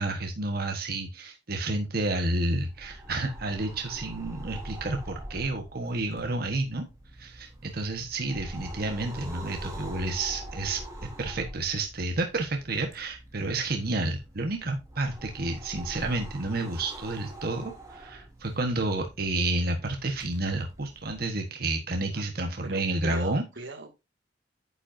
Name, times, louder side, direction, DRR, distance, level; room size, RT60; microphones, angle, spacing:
voice 1, 0.0-6.8 7.2-10.8 11.2-23.4, right 2 dB, 55° right, 1.3 m, -30 dB
sound 1, 2.6-21.3, right 1 dB, 20° right, 2.9 m, -44 dB
voice 2, 22.6-23.9, right 2 dB, 90° right, 2.2 m, -40 dB
9.6 x 7.7 x 2.7 m
head